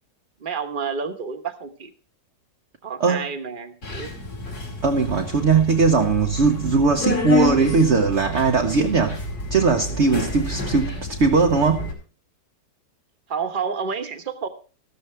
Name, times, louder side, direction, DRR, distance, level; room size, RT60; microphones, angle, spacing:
voice 1, 0.4-1.9 2.8-4.1 13.3-14.5, right 6 dB, 30° right, 1.2 m, -29 dB
Subway metro underground, 3.8-11.9, left 2 dB, 60° left, 3.5 m, -30 dB
voice 2, 4.8-9.2 9.5-11.9, right 4 dB, 45° right, 1.0 m, -19 dB
14.0 x 13.5 x 3.3 m
omnidirectional pair, 1.9 m